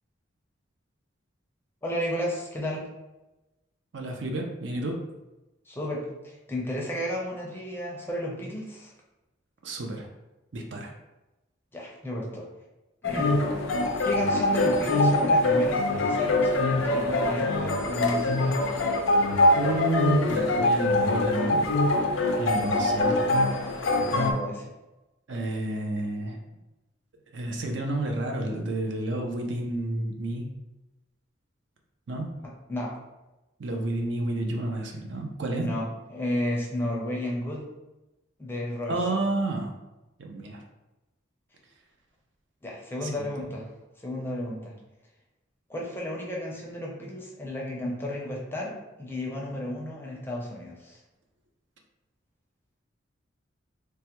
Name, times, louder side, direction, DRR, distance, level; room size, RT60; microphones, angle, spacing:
voice 1, 1.8-2.9 5.7-8.9 11.7-12.5 13.0-13.3 14.0-18.7 24.1-24.6 32.7-32.9 35.6-37.6 38.4-38.9 42.6-43.7 44.0-44.7 45.7-48.7 49.0-51.0, left 1 dB, 10° left, -3 dB, 0.5 m, -33 dB
voice 2, 3.9-5.0 9.6-10.1 10.5-10.9 19.5-21.6 22.4-23.2 25.3-26.4 27.3-30.4 32.1-32.3 33.6-35.7 38.9-39.7 40.2-40.6 43.0-43.1, right 2 dB, 65° right, 2 dB, 0.5 m, -30 dB
sound 1, 13.0-24.3, left 2 dB, 85° left, 0.4 m, -24 dB
3.3 x 2.1 x 2.9 m, 1.0 s
head